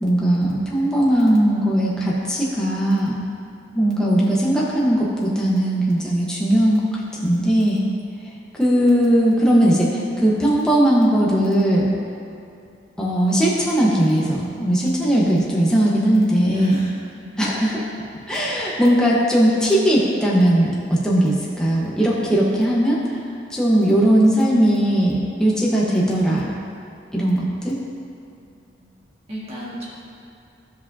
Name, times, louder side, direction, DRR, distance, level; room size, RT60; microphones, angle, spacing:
voice 1, 0.0-3.2 3.7-7.8 8.5-11.9 13.0-16.8 17.4-17.9 18.3-20.7 21.0-23.0 23.5-26.5 27.1-27.8, right 1 dB, 5° left, -6 dB, 1.1 m, -18 dB
voice 2, 16.5-17.3 28.3-28.9 29.3-29.9, right 1 dB, 30° right, -7 dB, 1.8 m, -35 dB
14.5 x 5.1 x 2.7 m, 2.5 s
head